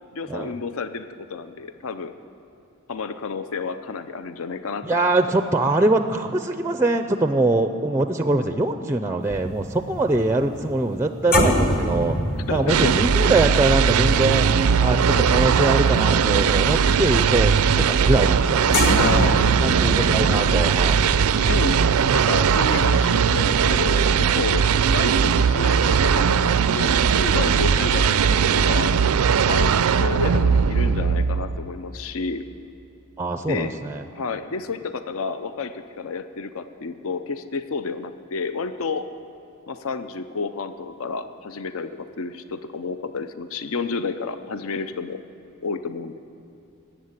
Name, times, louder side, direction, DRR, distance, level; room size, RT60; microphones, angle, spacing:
voice 1, 0.1-2.1 2.9-5.1 12.5-13.0 15.1-15.3 19.0-20.0 21.4-21.8 22.1-29.0 29.5-32.4 33.5-33.7 34.1-39.1 39.7-45.2 45.6-46.2, left 4 dB, 65° left, 11 dB, 0.6 m, -30 dB
voice 2, 4.8-12.1 12.5-14.5 14.8-18.7 19.6-21.0 33.2-34.0, right 2 dB, 10° right, 8 dB, 0.4 m, -23 dB
sound 1, 9.2-15.8 16.1-16.4 18.7-23.4 23.6-23.8, left 1 dB, 45° left, 1.5 m, -27 dB
sound 2, 12.7-31.7, right 6 dB, 85° right, 0.4 m, -19 dB
14.0 x 8.5 x 9.6 m, 2.8 s
head